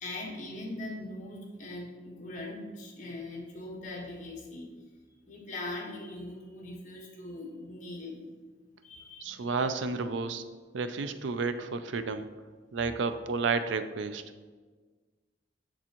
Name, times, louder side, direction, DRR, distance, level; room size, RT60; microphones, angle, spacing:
voice 1, 0.0-4.7 5.3-8.3 8.8-9.6 10.9-11.1, left 2 dB, 40° left, -2 dB, 1.4 m, -41 dB
voice 2, 9.2-10.4 10.7-12.3 12.7-14.2, right 4 dB, 70° right, 10 dB, 0.4 m, -31 dB
7.3 x 6.7 x 3.0 m, 1.4 s
head